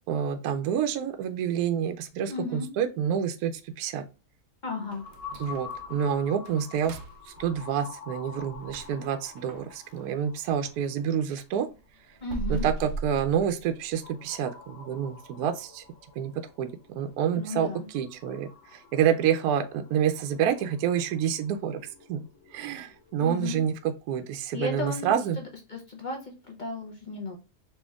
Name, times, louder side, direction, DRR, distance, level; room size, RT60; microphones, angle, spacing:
voice 1, 0.1-3.5 3.8-4.0 5.4-7.0 7.3-11.7 12.5-15.8 16.2-16.3 16.6-16.7 17.0-21.8 22.1-22.2 22.5-25.4, right 8 dB, 70° right, 8 dB, 1.0 m, -28 dB
voice 2, 2.3-2.7 4.6-5.0 12.2-12.7 17.3-17.9 23.2-23.6 24.5-25.2 25.7-26.2 26.5-27.4, left 3 dB, 45° left, 1 dB, 0.6 m, -34 dB
sound 1, 4.9-23.8, left 6 dB, 90° left, 1.7 m, -48 dB
sound 2, 4.9-10.8 11.2-14.1 14.4-14.5 15.0-15.1 15.6-16.0 16.3-16.4 16.9-17.0, right 3 dB, 90° right, 0.6 m, -40 dB
4.3 x 2.9 x 2.3 m, 0.30 s
omnidirectional pair, 1.8 m